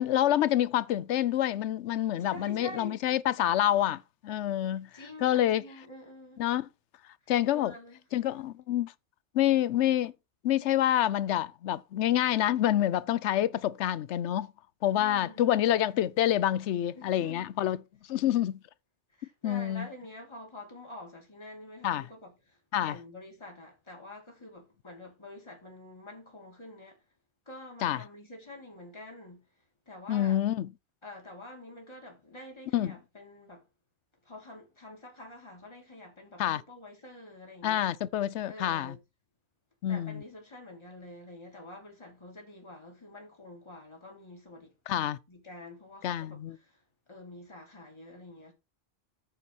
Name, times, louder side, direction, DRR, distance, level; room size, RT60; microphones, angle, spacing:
voice 1, 0.0-4.9 5.2-5.6 6.4-6.7 7.3-7.7 8.1-8.9 9.3-10.1 10.4-14.5 14.8-17.8 18.1-18.6 19.4-19.9 21.8-22.0 22.7-23.0 27.8-28.0 30.1-30.7 32.7-32.9 36.4-36.6 37.6-39.0 39.8-40.2 44.9-45.2 46.0-46.6, left 12 dB, 75° left, 0.9 m, -27 dB
voice 2, 2.2-3.1 4.9-6.4 7.2-8.0 14.9-15.5 16.9-17.5 19.1-27.0 27.5-30.4 31.0-33.7 34.2-38.0 38.5-39.0 39.9-44.8 45.3-48.5, left 1 dB, 25° left, 2.9 m, -47 dB
9.0 x 4.1 x 6.2 m
omnidirectional pair, 1.2 m